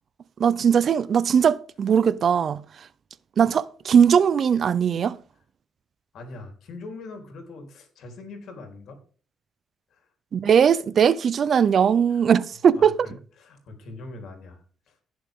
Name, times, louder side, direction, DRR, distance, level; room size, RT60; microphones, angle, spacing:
voice 1, 0.4-2.6 3.4-5.2 10.3-13.0, right 7 dB, 55° right, 0.7 m, -19 dB
voice 2, 6.1-9.0 9.9-10.0 12.1-12.2 12.7-14.6 14.9-15.0, left 3 dB, 70° left, 3.9 m, -42 dB
16.5 x 7.3 x 3.8 m
cardioid pair, 90°, 0 cm